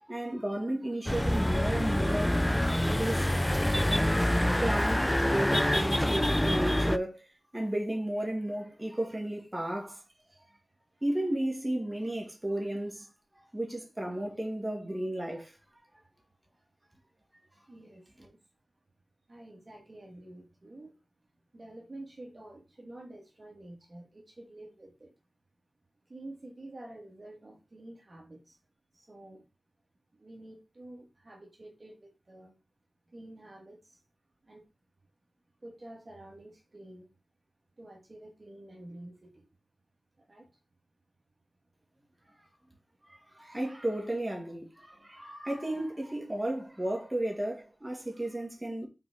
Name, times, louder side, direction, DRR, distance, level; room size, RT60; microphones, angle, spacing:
voice 1, 0.0-2.4 2.9-3.5 4.6-7.3 7.5-10.0 11.0-13.1 13.3-15.6 42.3-42.4 43.1-48.9, right 1 dB, 15° right, 1.9 m, -33 dB
sound 1, 1.1-7.0, left 1 dB, 10° left, 0.3 m, -26 dB
voice 2, 17.7-18.4 19.3-20.9 21.5-25.1 26.1-28.4 28.9-29.4 30.2-32.5 33.1-33.8 34.5-34.6 35.6-37.1 37.8-39.4 40.3-40.5, right 1 dB, 45° right, 2.0 m, -49 dB
5.9 x 4.0 x 4.2 m
wide cardioid pair, 70°, 0 cm